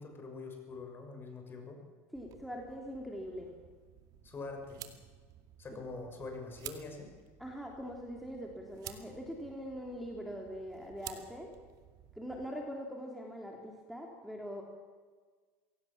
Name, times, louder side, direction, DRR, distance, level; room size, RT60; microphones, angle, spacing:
voice 1, 0.0-1.8 4.2-4.9 5.6-7.1, left 3 dB, 30° left, 4 dB, 6.2 m, -44 dB
voice 2, 2.1-3.5 5.7-5.8 7.4-11.5 12.1-14.6, equal, ahead, -1 dB, 3.1 m, -42 dB
sound 1, 2.1-12.5, right 11 dB, 55° right, 2.2 m, -53 dB
23.5 x 17.5 x 7.3 m, 1.5 s
supercardioid pair, 105°, 8 cm